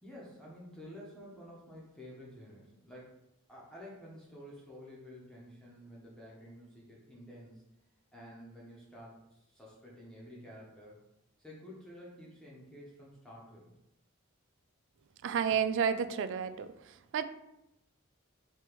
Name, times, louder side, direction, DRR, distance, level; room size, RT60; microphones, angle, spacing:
voice 1, 0.0-3.2 3.5-7.6 8.1-11.0 11.4-13.7, equal, 5° left, -6 dB, 0.9 m, -51 dB
voice 2, 15.2-16.7 17.1-17.2, right 7 dB, 60° right, 12 dB, 0.3 m, -30 dB
3.3 x 3.0 x 4.5 m, 0.85 s
head